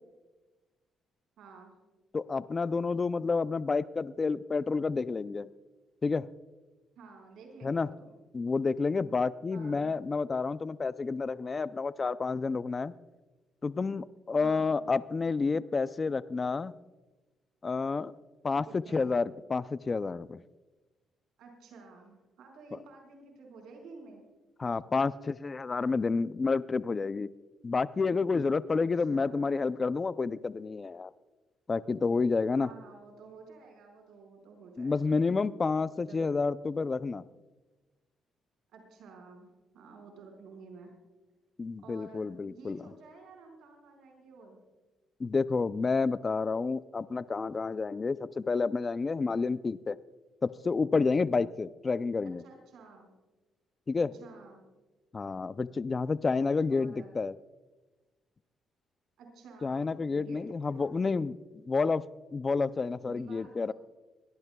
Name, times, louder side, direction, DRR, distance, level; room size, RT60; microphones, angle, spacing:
voice 1, 1.4-1.8 7.0-8.1 9.5-9.9 14.3-14.9 18.6-19.1 21.4-24.2 28.7-29.4 32.5-35.2 35.9-36.4 38.7-40.9 41.8-44.6 52.4-53.1 53.9-54.6 56.7-57.1 59.2-61.2 63.0-63.7, right 4 dB, 80° right, 2 dB, 4.7 m, -52 dB
voice 2, 2.1-5.5 6.0-6.3 7.6-7.9 8.3-12.9 13.6-16.7 17.6-18.1 18.4-20.4 22.7-22.8 24.6-27.3 27.6-31.1 31.7-32.7 34.8-37.2 41.6-42.8 45.2-50.0 50.4-52.4 53.9-54.1 55.1-57.3 59.6-61.3 61.7-63.7, left 4 dB, 30° left, 15 dB, 0.4 m, -29 dB
23.0 x 18.0 x 2.3 m, 1.2 s
cardioid pair, 90°, 0 cm